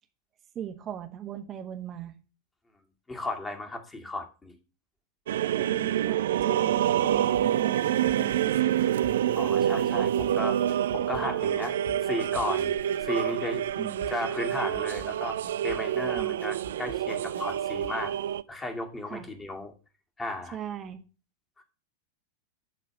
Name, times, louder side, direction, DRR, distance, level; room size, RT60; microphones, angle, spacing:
voice 1, 0.5-2.1 5.4-9.0 13.8-14.1 16.1-16.4 19.1-19.3 20.5-21.0, right 9 dB, 30° right, 6 dB, 1.5 m, -39 dB
voice 2, 3.1-4.6 9.4-10.6 10.9-11.8 12.0-12.7 13.0-13.6 14.1-15.4 15.6-18.1 18.5-19.7 20.2-20.6 21.6-21.7, left 1 dB, 15° left, 3 dB, 2.2 m, -34 dB
sound 1, 5.3-18.4, right 11 dB, 60° right, 0.4 m, -27 dB
sound 2, 6.3-18.0 18.3-18.4, right 1 dB, 80° right, 2.4 m, -47 dB
11.5 x 4.0 x 7.0 m, 0.34 s
figure-of-eight pair, 90°, 0 cm